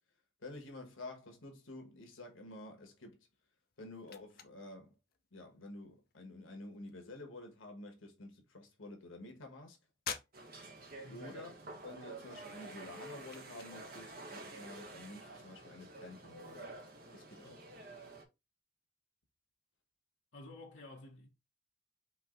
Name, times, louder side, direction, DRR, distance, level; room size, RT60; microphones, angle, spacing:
voice 1, 0.4-3.2 3.8-5.0 5.3-9.8 11.1-11.6 11.8-16.7 17.1-17.6, left 2 dB, 90° left, 1.4 m, -50 dB
sound 1, 3.2-17.7, left 8 dB, 50° left, 0.6 m, -54 dB
sound 2, 10.3-18.2, right 2 dB, 45° right, 1.0 m, -50 dB
voice 2, 11.0-11.3 20.3-21.3, left 2 dB, 65° left, 1.2 m, -51 dB
4.7 x 2.9 x 3.7 m
head